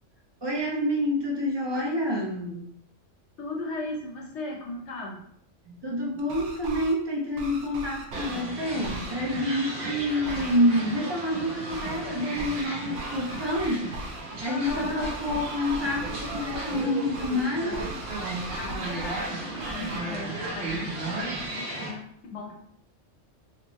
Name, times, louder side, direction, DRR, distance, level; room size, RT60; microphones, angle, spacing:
voice 1, 0.4-2.7 5.7-14.0 14.4-17.9, left 1 dB, 30° right, -2 dB, 0.6 m, -28 dB
voice 2, 3.4-5.2 14.4-15.1 18.6-22.5, left 2 dB, 70° left, 0 dB, 1.1 m, -37 dB
sound 1, 6.2-6.9 7.4-8.4 8.8-9.1 10.2-10.6 11.7-12.0 12.4-12.7 12.9-14.2 14.6-16.8 17.1-17.4 17.7-19.3 19.6-20.0, right 2 dB, 75° right, 1.0 m, -39 dB
sound 2, 8.1-21.9, right 2 dB, 55° right, 1.0 m, -35 dB
3.4 x 2.8 x 3.0 m, 0.68 s
omnidirectional pair, 1.3 m